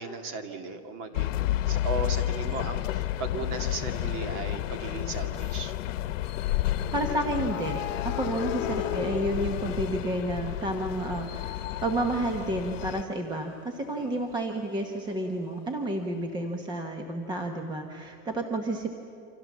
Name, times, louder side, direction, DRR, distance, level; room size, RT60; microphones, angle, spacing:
voice 1, 0.0-5.7 14.0-14.2, right 3 dB, 35° right, 7 dB, 2.2 m, -36 dB
sound 1, 1.1-13.0, left 14 dB, 85° left, 1.1 m, -31 dB
sound 2, 3.5-3.7 6.8-10.7 11.1-14.7, left 9 dB, 40° left, 3.1 m, -38 dB
voice 2, 6.9-18.9, right 1 dB, 10° right, 4 dB, 1.1 m, -31 dB
28.5 x 26.0 x 7.3 m, 2.9 s
supercardioid pair, 175°, 37 cm